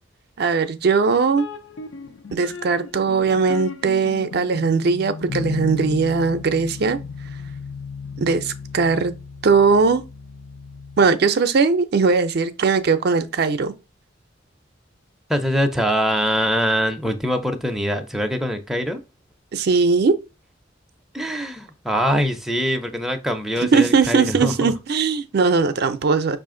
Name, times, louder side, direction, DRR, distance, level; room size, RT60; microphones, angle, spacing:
voice 1, 0.4-1.5 2.3-7.0 8.2-9.1 9.4-10.0 11.0-13.7 19.5-20.1 23.6-26.4, right 4 dB, 55° right, 0.4 m, -19 dB
sound 1, 1.3-11.1, left 5 dB, 80° left, 0.6 m, -35 dB
voice 2, 15.3-19.0 21.1-24.7, equal, ahead, 0.4 m, -23 dB
5.5 x 2.5 x 3.7 m
head